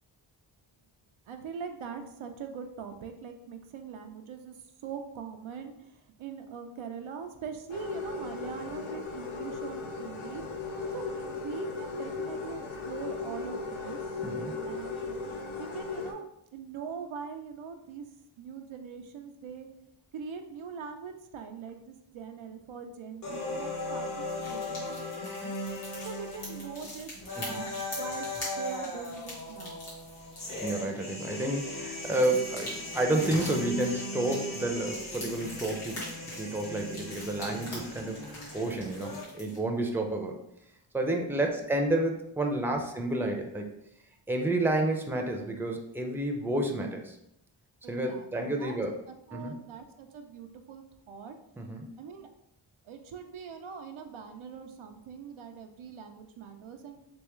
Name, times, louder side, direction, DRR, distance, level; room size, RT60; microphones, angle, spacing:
voice 1, 1.3-4.6 4.8-10.4 10.9-14.2 14.6-15.2 15.6-16.3 16.5-18.1 18.4-19.7 20.1-25.6 26.0-29.8 37.8-37.9 38.2-38.3 41.3-41.5 42.7-42.8 47.8-48.8 49.1-51.4 52.0-52.3 52.8-57.0, right 6 dB, 75° right, 5 dB, 0.6 m, -42 dB
sound 1, 7.7-16.1, left 4 dB, 70° left, 0.7 m, -37 dB
voice 2, 14.2-14.6 27.4-27.6 30.6-40.4 40.9-43.8 44.3-47.2 47.9-49.0 49.3-49.6 51.6-51.9, right 1 dB, 5° right, 3 dB, 0.6 m, -30 dB
sound 2, 23.2-39.2, left 1 dB, 40° left, 1.1 m, -38 dB
sound 3, 24.3-30.9 31.5-39.6, left 1 dB, 90° left, 1.5 m, -44 dB
3.5 x 3.1 x 3.0 m, 0.79 s
cardioid pair, 45°, 49 cm